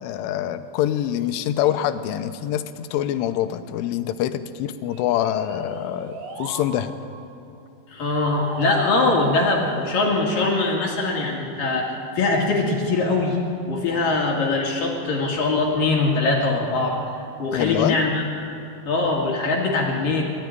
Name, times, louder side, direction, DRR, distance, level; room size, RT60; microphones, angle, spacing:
voice 1, 0.0-6.9 17.5-18.0, left 11 dB, 80° left, 10 dB, 3.3 m, -25 dB
sound 1, 4.9-6.7 8.0-10.1, right 2 dB, 85° right, 5.8 m, -37 dB
voice 2, 7.9-13.4 13.7-17.0 17.4-18.2 18.9-20.2, left 3 dB, 50° left, -1 dB, 3.3 m, -22 dB
23.5 x 14.0 x 9.5 m, 2.8 s
omnidirectional pair, 5.7 m